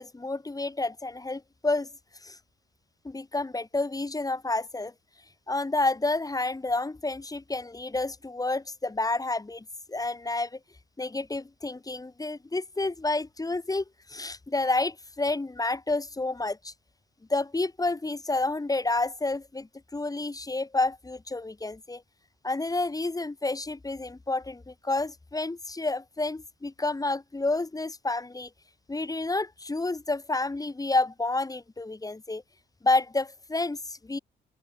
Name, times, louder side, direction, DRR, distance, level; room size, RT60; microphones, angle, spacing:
voice 1, 0.0-1.9 2.2-2.4 3.0-4.9 5.5-10.6 11.0-16.7 17.3-22.0 22.4-28.5 28.9-32.4 32.8-34.2, left 2 dB, 20° left, 5.2 m, -29 dB
open air
cardioid pair, 90°, 20 cm